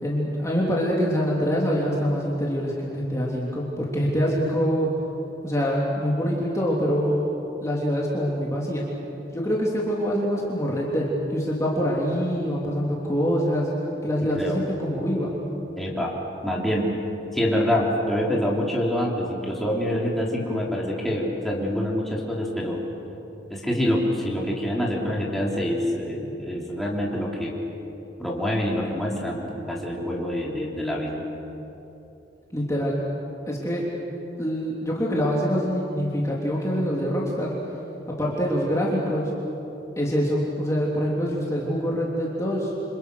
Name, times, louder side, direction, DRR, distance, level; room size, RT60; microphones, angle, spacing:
voice 1, 0.0-4.9 5.4-7.3 7.6-8.8 9.3-13.7 14.0-15.3 32.5-33.0 33.5-33.8 34.4-37.5 38.1-39.3 40.0-42.7, equal, 15° left, -4 dB, 3.1 m, -25 dB
voice 2, 15.8-16.2 16.4-17.0 17.3-22.8 23.5-27.6 28.2-31.3, equal, ahead, -4 dB, 3.6 m, -26 dB
29.5 x 27.0 x 6.4 m, 3.0 s
head